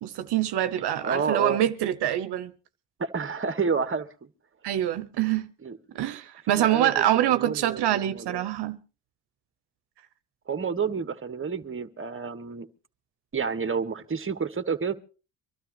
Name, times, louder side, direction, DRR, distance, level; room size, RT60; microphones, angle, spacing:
voice 1, 0.0-2.5 4.6-5.5 5.9-8.8, right 12 dB, 75° right, 1.0 m, -25 dB
voice 2, 1.0-1.6 3.0-4.3 5.6-5.8 6.5-8.4 10.5-12.7 13.3-14.9, right 5 dB, 30° right, 1.5 m, -30 dB
25.0 x 12.5 x 3.1 m
supercardioid pair, 70°, 41 cm